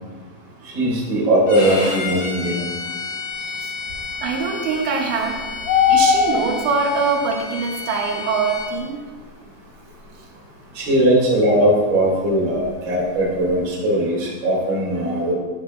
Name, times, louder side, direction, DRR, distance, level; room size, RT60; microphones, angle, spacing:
voice 1, 0.7-2.6 10.8-15.3, right 1 dB, 35° right, -6 dB, 2.4 m, -19 dB
Bowed string instrument, 1.5-8.7, left 4 dB, 45° left, 1.3 m, -31 dB
voice 2, 4.2-5.5 5.9-9.0, right 4 dB, 85° right, 2 dB, 3.3 m, -23 dB
sound 1, 5.2-6.8 9.2-9.3 11.5-11.9 12.2-12.3 12.5-13.5, left 7 dB, 85° left, 3.0 m, -19 dB
11.5 x 8.1 x 2.5 m, 1.4 s
omnidirectional pair, 5.1 m